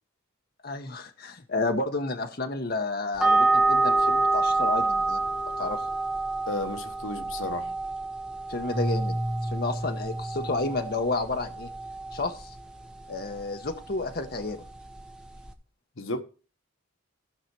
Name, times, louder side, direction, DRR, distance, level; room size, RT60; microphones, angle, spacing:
voice 1, 0.6-5.2 5.6-5.8 8.5-9.2 9.4-11.7 12.1-12.5 13.1-14.6, left 3 dB, 50° left, 1.0 m, -31 dB
sound 1, 3.2-15.5, right 3 dB, 5° right, 0.8 m, -28 dB
voice 2, 6.5-7.7 16.0-16.2, left 2 dB, 80° left, 1.0 m, -33 dB
Keyboard (musical), 8.7-11.8, equal, 55° right, 2.5 m, -33 dB
15.0 x 5.6 x 4.6 m
head